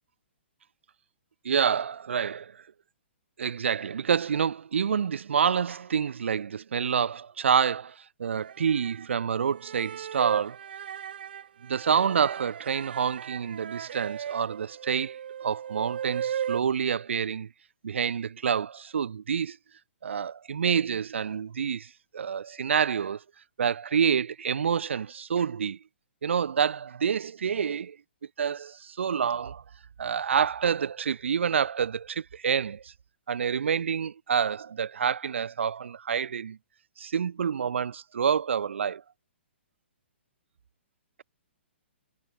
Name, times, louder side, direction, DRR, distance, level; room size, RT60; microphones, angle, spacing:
voice 1, 1.4-2.6 3.4-10.6 11.6-17.5 17.8-19.6 20.0-23.2 23.6-25.8 26.2-28.0 28.4-29.6 30.0-32.9 33.3-36.6 37.0-39.0, right 7 dB, 75° right, 1.3 m, -28 dB
sound 1, 8.4-9.1 9.6-16.6, right 9 dB, 50° right, 2.7 m, -36 dB
hypercardioid pair, 175°, 7 cm